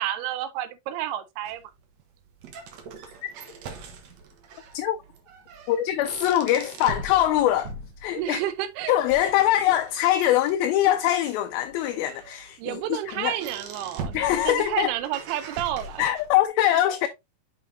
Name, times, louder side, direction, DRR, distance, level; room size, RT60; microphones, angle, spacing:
voice 1, 0.0-1.6 8.2-9.0 9.2-9.3 12.6-16.0, right 12 dB, 90° right, 2.7 m, -30 dB
sound 1, 1.5-16.5, right 3 dB, 65° right, 1.8 m, -42 dB
voice 2, 5.7-7.7 8.0-8.4 8.9-13.3 14.1-14.9 16.0-17.1, left 12 dB, 80° left, 2.3 m, -23 dB
6.5 x 6.3 x 2.7 m
omnidirectional pair, 4.4 m